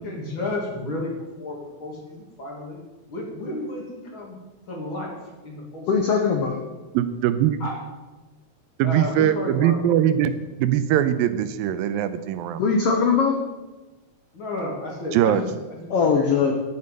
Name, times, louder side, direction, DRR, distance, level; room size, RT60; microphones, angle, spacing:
voice 1, 0.0-2.8 3.1-4.4 4.7-5.2 5.4-5.9 7.6-7.8 8.8-9.8 14.3-16.5, left 2 dB, 40° left, -1 dB, 2.4 m, -32 dB
voice 2, 5.9-6.6 12.6-13.4 15.9-16.5, left 5 dB, 75° left, 2 dB, 1.3 m, -20 dB
voice 3, 6.9-7.6 8.8-10.3 10.6-12.6 15.1-15.4, right 11 dB, 85° right, 12 dB, 2.4 m, -21 dB
11.5 x 9.5 x 5.3 m, 1.2 s
omnidirectional pair, 4.2 m